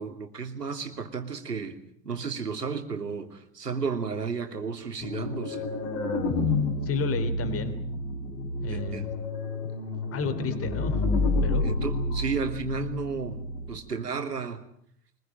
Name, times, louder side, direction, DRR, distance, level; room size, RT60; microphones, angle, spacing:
voice 1, 0.0-1.8 2.0-5.7 8.7-9.1 11.6-14.6, right 5 dB, 80° right, 6 dB, 3.0 m, -33 dB
sound 1, 5.0-13.8, left 2 dB, 50° left, 5.3 m, -29 dB
voice 2, 6.8-7.8 8.6-9.1 10.0-11.0 11.4-11.7, left 4 dB, 30° left, 11 dB, 3.1 m, -32 dB
24.0 x 21.5 x 8.9 m, 0.64 s
figure-of-eight pair, 80°, 47 cm